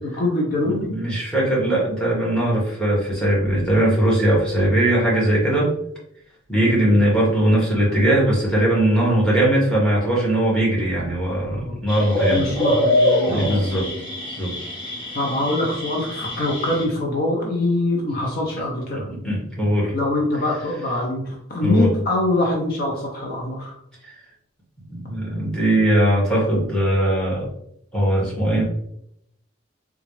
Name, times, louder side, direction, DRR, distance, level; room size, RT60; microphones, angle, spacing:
voice 1, 0.0-0.9 6.6-7.0 11.4-11.8 12.3-13.6 15.1-19.1 19.9-23.7, left 2 dB, 50° left, -1 dB, 0.6 m, -24 dB
voice 2, 0.6-5.7 6.5-12.5 13.3-13.9 14.3-14.5 18.9-19.9 21.6-21.9 24.0-24.1 24.9-27.5 27.9-28.6, right 1 dB, 5° left, -5 dB, 1.3 m, -20 dB
sound 1, 11.9-16.8, left 1 dB, 25° left, 1.2 m, -24 dB
3.9 x 2.4 x 3.1 m, 0.74 s
head